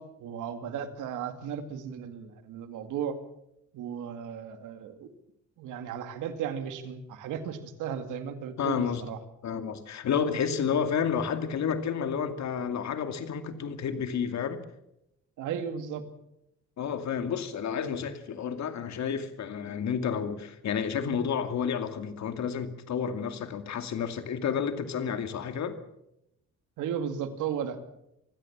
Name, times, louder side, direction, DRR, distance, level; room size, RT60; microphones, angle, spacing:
voice 1, 0.0-3.2 3.7-5.1 5.6-9.2 15.4-16.0 26.8-27.8, right 8 dB, 90° right, 9 dB, 2.2 m, -35 dB
voice 2, 8.6-9.0 9.4-14.6 16.8-25.8, left 7 dB, 65° left, 8 dB, 2.5 m, -30 dB
24.0 x 16.5 x 7.4 m, 0.83 s
cardioid pair, 90°, 30 cm